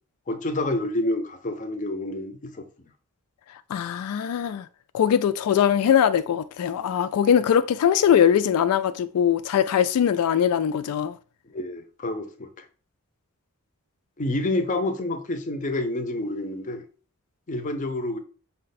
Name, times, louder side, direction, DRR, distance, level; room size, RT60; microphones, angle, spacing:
voice 1, 0.3-2.6 11.5-12.7 14.2-16.8 17.5-18.2, left 2 dB, 35° left, 0.5 m, -28 dB
voice 2, 3.7-4.7 4.9-11.1, left 8 dB, 90° left, 0.3 m, -21 dB
5.6 x 2.2 x 4.0 m
head